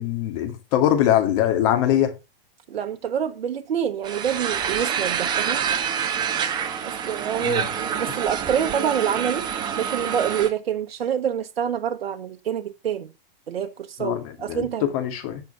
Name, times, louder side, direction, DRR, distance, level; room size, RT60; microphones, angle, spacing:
voice 1, 0.0-2.1 7.4-7.7 14.0-14.2 14.5-15.4, left 11 dB, 35° left, 2.1 m, -22 dB
voice 2, 2.7-5.6 6.8-13.1 13.5-14.9, right 8 dB, 85° right, 1.0 m, -27 dB
sound 1, 4.0-10.5, right 8 dB, 15° right, 0.9 m, -27 dB
9.1 x 5.8 x 5.4 m
hypercardioid pair, 155°, 29 cm